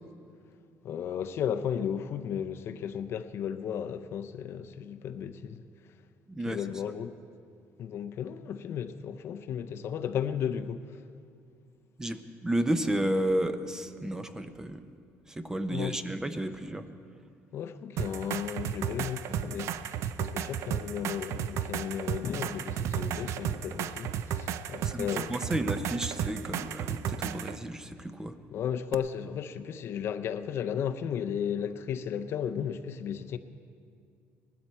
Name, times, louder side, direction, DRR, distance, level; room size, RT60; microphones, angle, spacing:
voice 1, 0.8-5.6 6.5-7.1 7.8-11.0 15.7-16.0 17.5-25.3 28.5-33.4, left 8 dB, 50° left, 0.5 m, -34 dB
voice 2, 6.3-6.6 12.0-14.8 15.3-16.9 24.8-28.4, right 1 dB, 10° right, 0.6 m, -32 dB
sound 1, 18.0-27.6 28.9-29.0, right 9 dB, 65° right, 0.5 m, -34 dB
19.0 x 12.5 x 4.4 m
cardioid pair, 150°, 5 cm